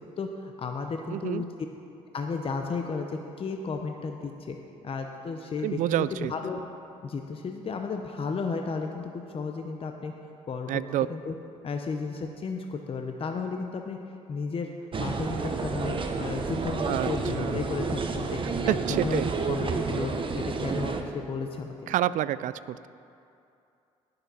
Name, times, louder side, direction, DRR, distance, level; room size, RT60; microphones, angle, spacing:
voice 1, 0.2-1.5 2.1-4.6 4.8-6.6 7.0-10.1 10.5-10.7 11.1-11.3 11.6-14.0 14.3-14.7 15.0-21.9, left 4 dB, 40° left, 4 dB, 0.9 m, -33 dB
voice 2, 1.1-1.4 5.6-6.3 10.7-11.1 16.9-17.1 17.4-17.6 18.7-19.3 21.9-22.9, right 13 dB, 65° right, 17 dB, 0.4 m, -28 dB
sound 1, 14.9-21.0, right 4 dB, 40° right, 1.0 m, -30 dB
19.0 x 7.0 x 4.2 m, 2.6 s
supercardioid pair, 65°, 14 cm